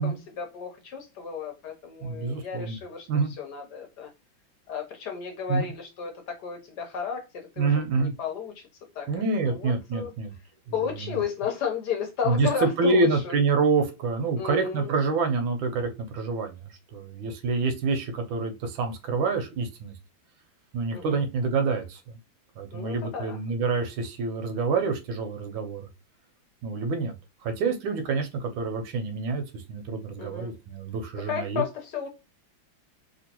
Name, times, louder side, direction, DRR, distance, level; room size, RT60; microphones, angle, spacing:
voice 1, 0.0-3.1 3.4-4.1 4.7-8.6 8.9-9.1 9.3-10.1 10.7-13.3 14.4-14.9 20.9-21.2 22.7-23.4 30.2-30.5 31.3-32.1, left 7 dB, 65° left, 1.2 m, -33 dB
voice 2, 2.0-2.8 3.1-3.3 5.5-5.7 7.6-8.1 9.1-10.3 11.0-11.2 12.2-19.9 20.7-22.2 22.6-25.9 26.6-27.1 27.4-31.6, right 4 dB, 80° right, 1.4 m, -27 dB
3.1 x 3.0 x 2.8 m
omnidirectional pair, 2.2 m